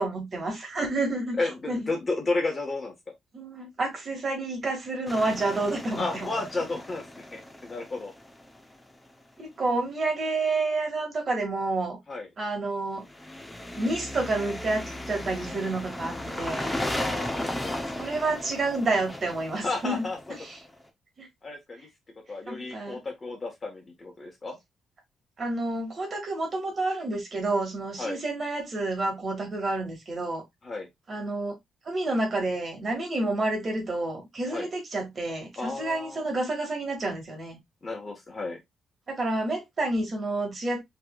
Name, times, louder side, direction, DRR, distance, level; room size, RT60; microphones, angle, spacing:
voice 1, 0.0-1.8 3.3-6.3 9.4-12.0 12.4-13.1 13.8-16.7 17.9-20.1 20.4-20.6 21.2-21.3 22.5-23.0 25.4-30.4 31.1-31.6 31.9-37.6 39.1-40.8, right 2 dB, 40° right, 2.1 m, -29 dB
voice 2, 1.4-2.9 5.9-8.1 12.1-12.3 16.9-17.8 19.6-20.2 21.4-21.9 22.3-24.6 28.0-28.2 30.6-30.9 34.5-34.7 35.6-36.3 37.8-38.6, left 3 dB, 30° left, 1.5 m, -32 dB
sound 1, 5.1-8.9 13.1-20.7, left 1 dB, 10° left, 0.9 m, -36 dB
5.6 x 3.4 x 2.5 m
cardioid pair, 130°, 0 cm